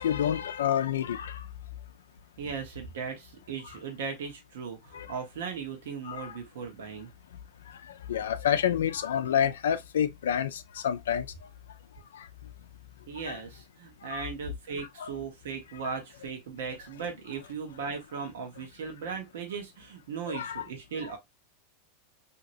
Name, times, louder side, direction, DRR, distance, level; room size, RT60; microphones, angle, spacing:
voice 1, 0.0-1.5 4.9-5.1 6.1-6.4 7.7-11.3 12.1-12.3 13.3-13.4 14.1-14.2 15.0-15.1 20.3-20.6, left 9 dB, 90° left, 0.4 m, -29 dB
voice 2, 2.4-7.1 13.1-21.2, right 6 dB, 80° right, 1.0 m, -37 dB
2.9 x 2.8 x 2.6 m
hypercardioid pair, 120°, 0 cm